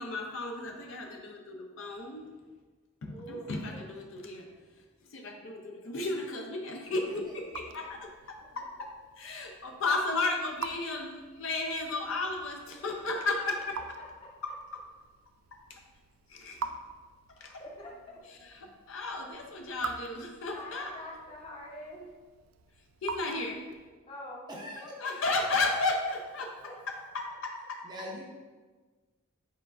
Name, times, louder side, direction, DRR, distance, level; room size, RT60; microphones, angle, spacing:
voice 1, 0.0-2.2 3.0-4.5 5.1-13.8 14.4-14.6 15.5-15.8 16.3-16.7 17.4-17.6 18.3-21.0 23.0-23.6 25.0-26.5 27.1-27.8, left 3 dB, 65° left, 2 dB, 0.5 m, -34 dB
voice 2, 3.1-3.8 12.8-12.9 14.0-14.3 17.6-18.5 20.5-22.1 24.1-24.6 26.6-26.8, equal, 25° left, -3 dB, 0.7 m, -45 dB
Raindrop / Drip, 6.8-24.0, right 6 dB, 80° right, 0.3 m, -46 dB
voice 3, 6.9-7.3 7.9-8.0 8.5-8.6 17.9-18.8 24.5-25.0 27.8-28.2, equal, 20° right, -2 dB, 0.6 m, -46 dB
4.5 x 4.1 x 2.4 m, 1.4 s
head